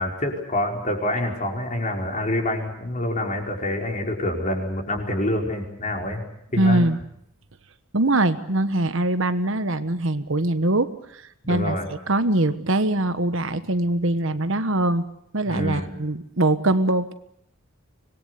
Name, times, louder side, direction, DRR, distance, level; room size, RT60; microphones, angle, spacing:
voice 1, 0.0-6.2 6.5-6.9 11.4-11.9 15.5-15.9, left 1 dB, 35° left, 2 dB, 5.1 m, -26 dB
voice 2, 6.6-7.0 7.9-11.8 12.1-15.1 15.3-17.1, right 2 dB, 65° right, 11 dB, 1.3 m, -22 dB
25.5 x 21.0 x 8.3 m, 0.73 s
head